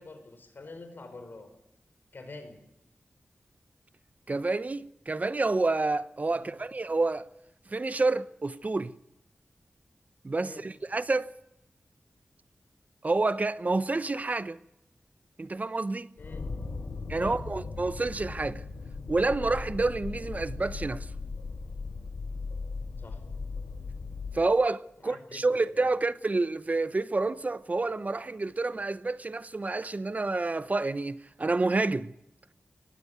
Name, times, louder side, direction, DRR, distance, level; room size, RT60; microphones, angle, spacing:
voice 1, 0.0-1.5 2.1-2.6 6.3-6.6 10.4-10.7 16.2-16.5 17.2-17.5 23.0-23.2 25.0-25.9, left 3 dB, 65° left, 4.8 m, -46 dB
voice 2, 4.3-7.3 7.7-8.9 10.2-11.3 13.0-14.6 15.4-16.1 17.1-18.6 19.1-21.1 24.3-32.1, right 3 dB, 45° right, 0.8 m, -28 dB
sound 1, 16.2-24.5, left 4 dB, 90° left, 3.3 m, -38 dB
18.5 x 15.0 x 9.5 m
cardioid pair, 55°, 4 cm